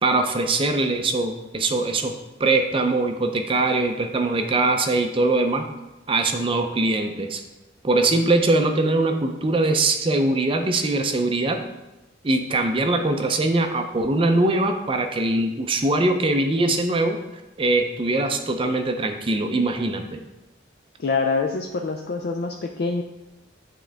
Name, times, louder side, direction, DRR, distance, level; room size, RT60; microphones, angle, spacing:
voice 1, 0.0-2.1 2.4-5.6 6.1-7.4 7.8-11.6 12.2-17.2 17.6-20.2, right 2 dB, 30° right, 5 dB, 0.4 m, -22 dB
voice 2, 21.0-23.0, left 4 dB, 55° left, 3 dB, 0.4 m, -25 dB
8.5 x 3.7 x 3.4 m, 1.0 s
head